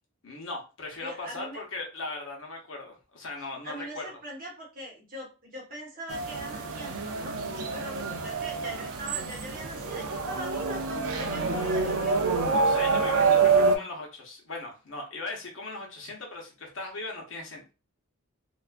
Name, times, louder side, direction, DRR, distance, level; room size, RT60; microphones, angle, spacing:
voice 1, 0.2-4.2 12.5-17.7, left 2 dB, 65° left, 0 dB, 0.8 m, -38 dB
voice 2, 1.0-1.6 3.6-12.3 13.7-13.9, right 1 dB, 40° right, -1 dB, 0.8 m, -41 dB
sound 1, 6.1-13.8, right 4 dB, 85° right, 0.4 m, -26 dB
2.4 x 2.2 x 2.4 m, 0.31 s
head